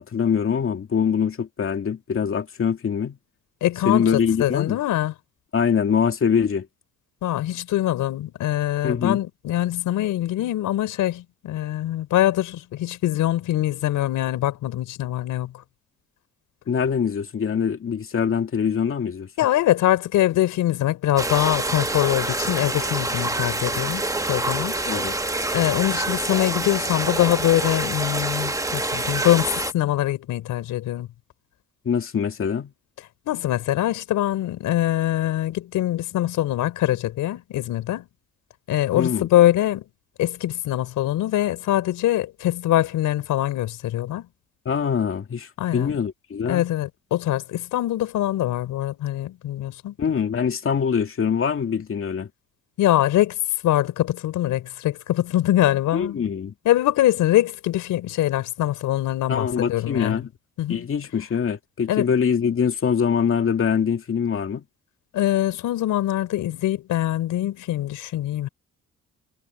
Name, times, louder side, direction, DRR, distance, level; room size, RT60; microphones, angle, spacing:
voice 1, 0.0-3.2 3.9-4.8 5.5-6.7 8.8-9.2 16.7-19.3 24.9-25.1 31.8-32.7 38.9-39.3 44.7-46.6 50.0-52.3 55.9-56.5 59.3-60.3 60.7-64.6, left 7 dB, 45° left, 2.5 m, -23 dB
voice 2, 3.6-5.1 7.2-15.5 19.4-24.8 25.5-31.1 33.3-38.0 38.7-39.8 40.2-44.3 45.6-46.0 46.5-49.9 52.8-53.4 53.6-56.2 56.6-60.2 60.6-60.9 61.9-62.1 65.1-68.5, left 13 dB, 85° left, 4.4 m, -23 dB
sound 1, 21.2-29.7, right 2 dB, 10° right, 1.4 m, -26 dB
cardioid pair, 90°, 30 cm